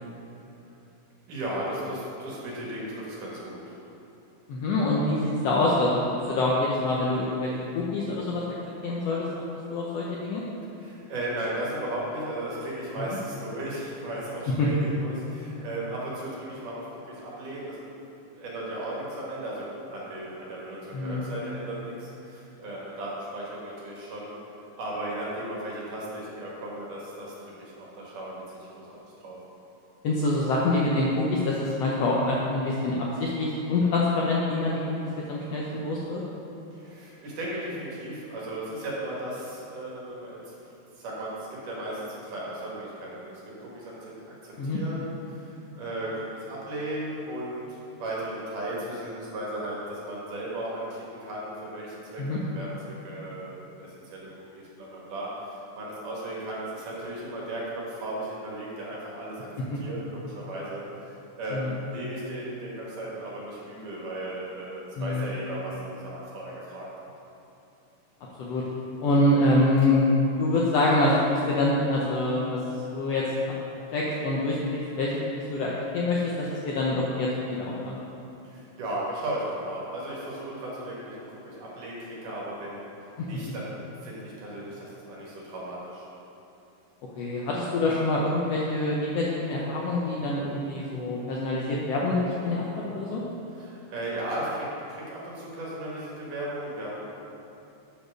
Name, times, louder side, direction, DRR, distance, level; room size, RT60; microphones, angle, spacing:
voice 1, 1.3-3.8 10.7-17.8 18.3-24.3 24.8-29.4 36.7-44.1 44.4-59.5 59.8-66.9 78.4-86.1 93.5-97.0, right 1 dB, 75° right, -5 dB, 3.1 m, -36 dB
voice 2, 4.5-6.0 6.3-7.5 7.7-8.4 8.8-9.3 9.7-10.4 14.6-14.7 20.9-21.2 30.0-32.9 33.2-34.8 35.3-36.2 44.6-44.8 52.2-52.4 61.5-61.7 65.0-65.2 68.4-68.6 69.0-70.1 70.4-72.6 72.9-73.2 73.9-75.1 75.5-78.0 83.2-83.3 87.2-93.2, left 2 dB, 80° left, -4 dB, 1.4 m, -25 dB
8.2 x 4.5 x 6.1 m, 2.9 s
omnidirectional pair, 3.8 m